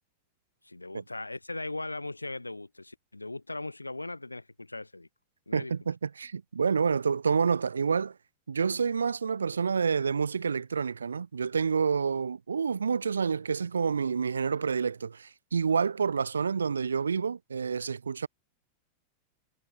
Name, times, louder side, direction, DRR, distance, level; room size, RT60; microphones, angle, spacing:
voice 1, 0.6-5.1 5.5-5.7, left 2 dB, 85° left, 1.3 m, -39 dB
voice 2, 5.5-8.1 8.5-18.3, right 6 dB, 75° right, 0.8 m, -28 dB
figure-of-eight pair, 90°, 0 cm